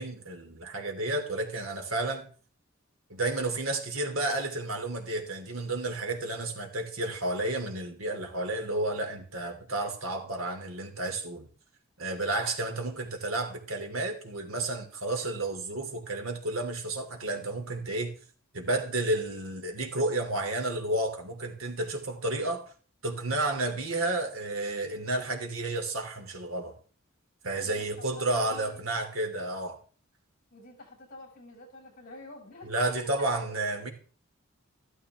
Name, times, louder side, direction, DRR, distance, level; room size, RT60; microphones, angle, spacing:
voice 1, 0.0-2.3 3.1-11.5 12.0-18.1 18.5-22.6 23.0-26.7 27.4-29.8 32.6-33.9, right 2 dB, 85° right, 4 dB, 3.0 m, -31 dB
voice 2, 27.6-28.9 30.5-33.9, left 2 dB, 45° left, 1 dB, 7.3 m, -48 dB
14.5 x 13.0 x 3.6 m, 0.41 s
head